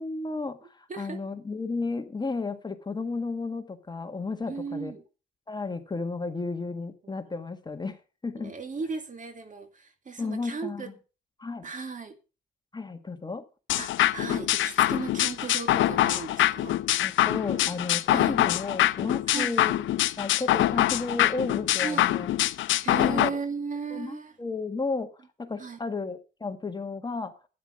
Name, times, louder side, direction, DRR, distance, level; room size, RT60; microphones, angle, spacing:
voice 1, 0.0-4.9 5.5-8.5 10.2-10.9 11.4-11.7 12.7-13.4 17.0-19.8 20.2-22.4 23.0-23.4 23.9-25.1 25.4-27.3, left 3 dB, 20° left, 1.6 m, -33 dB
voice 2, 4.5-5.0 7.0-7.3 8.4-10.9 11.6-12.1 13.8-16.8 18.1-18.4 19.3-19.5 21.8-22.1 22.8-24.4 25.6-25.8, right 5 dB, 40° right, 2.2 m, -36 dB
sound 1, 13.7-23.3, left 14 dB, 75° left, 0.6 m, -24 dB
12.5 x 9.5 x 5.2 m
cardioid pair, 90°, 20 cm